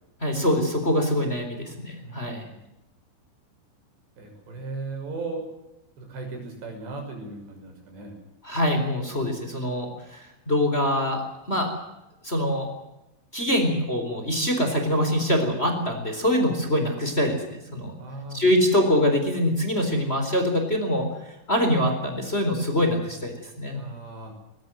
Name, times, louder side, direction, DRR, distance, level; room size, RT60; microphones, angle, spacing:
voice 1, 0.2-2.4 8.4-11.2 11.5-11.7 12.2-12.7 13.3-17.4 17.7-17.9 18.3-21.1 21.5-23.8, equal, 15° left, 5 dB, 3.6 m, -24 dB
voice 2, 2.0-2.6 4.2-5.4 6.0-8.2 18.0-18.4 23.7-24.3, right 3 dB, 60° right, 4 dB, 8.1 m, -37 dB
21.0 x 20.5 x 7.7 m, 0.92 s
omnidirectional pair, 5.8 m